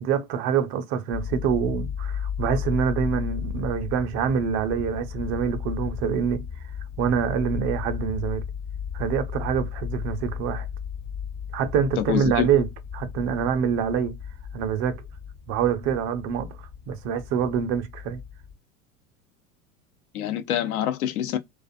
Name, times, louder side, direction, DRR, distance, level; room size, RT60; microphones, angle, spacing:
voice 1, 0.0-6.5 7.0-8.4 8.9-10.7 11.5-12.7 12.9-14.2 14.5-15.0 15.5-16.6 16.9-18.2, right 7 dB, 40° right, 0.5 m, -25 dB
sound 1, 1.1-18.5, left 7 dB, 45° left, 0.9 m, -34 dB
voice 2, 12.0-12.5 20.1-21.4, left 11 dB, 75° left, 0.6 m, -26 dB
2.4 x 2.2 x 2.5 m
hypercardioid pair, 90°, 44 cm